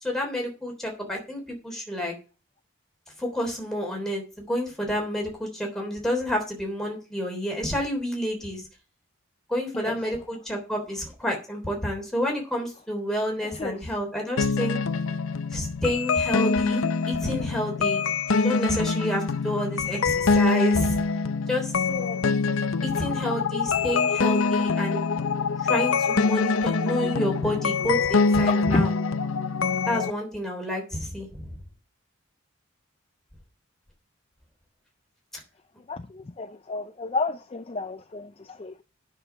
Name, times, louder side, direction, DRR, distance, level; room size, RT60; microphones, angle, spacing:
voice 1, 0.0-2.1 3.2-8.6 9.5-14.8 15.5-18.0 18.4-21.0 21.5-21.7 22.8-25.0 25.6-28.9 29.9-31.6, equal, ahead, 3.4 m, -29 dB
sound 1, 14.4-30.1, left 4 dB, 85° left, 0.6 m, -24 dB
voice 2, 21.9-22.2 28.4-28.9 35.9-38.8, left 3 dB, 30° left, 0.4 m, -30 dB
9.8 x 6.6 x 6.9 m
head